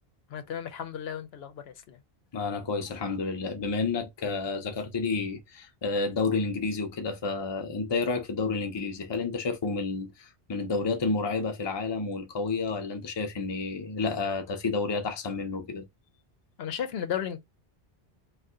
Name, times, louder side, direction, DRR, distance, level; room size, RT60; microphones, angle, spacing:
voice 1, 0.3-2.0 16.6-17.4, left 9 dB, 75° left, 0.8 m, -34 dB
voice 2, 2.3-15.9, left 4 dB, 35° left, 0.5 m, -30 dB
2.6 x 2.4 x 3.5 m
omnidirectional pair, 1.1 m